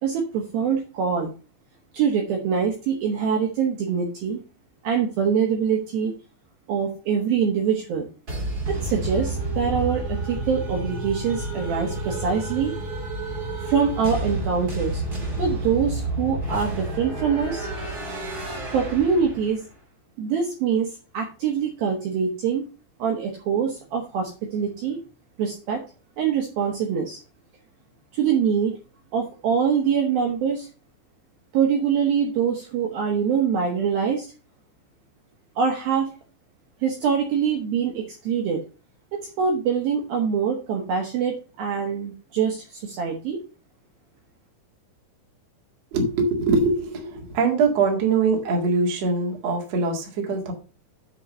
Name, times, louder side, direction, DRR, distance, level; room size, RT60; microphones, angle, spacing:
voice 1, 0.0-1.3 1.9-4.4 4.8-6.1 6.7-8.1 8.7-12.7 13.6-15.0 15.4-17.7 18.7-19.6 20.2-22.6 23.0-25.0 25.4-25.8 26.2-27.2 28.1-28.8 29.1-30.7 31.5-34.3 35.6-36.1 36.8-38.6 39.4-43.4, right 7 dB, 65° right, 1 dB, 2.7 m, -24 dB
sound 1, 8.3-19.7, right 2 dB, 30° right, 1.8 m, -30 dB
voice 2, 45.9-50.5, right 4 dB, 45° right, 2 dB, 2.4 m, -22 dB
8.5 x 4.7 x 6.5 m, 0.34 s
omnidirectional pair, 5.4 m